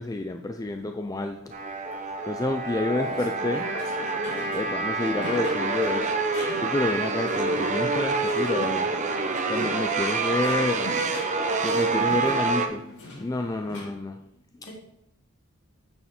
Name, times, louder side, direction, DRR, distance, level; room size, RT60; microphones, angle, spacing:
voice 1, 0.0-1.6 2.2-3.7 4.5-6.2 6.6-9.0 9.5-14.2 14.6-14.7, left 2 dB, 15° left, 5 dB, 0.4 m, -29 dB
sound 1, 1.5-12.7, right 3 dB, 35° right, 0.8 m, -27 dB
voice 2, 2.9-3.2 3.5-4.2 14.6-14.7, left 4 dB, 65° left, -5 dB, 3.9 m, -37 dB
sound 2, 3.0-13.9, left 2 dB, 90° left, 4.0 m, -42 dB
8.9 x 6.7 x 4.3 m, 0.78 s
head